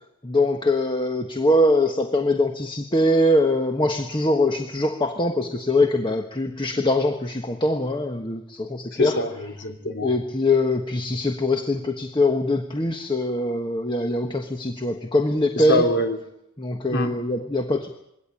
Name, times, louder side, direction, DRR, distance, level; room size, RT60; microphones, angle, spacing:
voice 1, 0.2-9.2 10.0-15.8 16.6-17.9, left 1 dB, 20° left, 5 dB, 1.3 m, -22 dB
voice 2, 8.9-10.1 15.6-16.2 16.9-17.2, left 1 dB, 55° left, 5 dB, 3.3 m, -24 dB
22.0 x 17.5 x 8.7 m, 0.79 s
head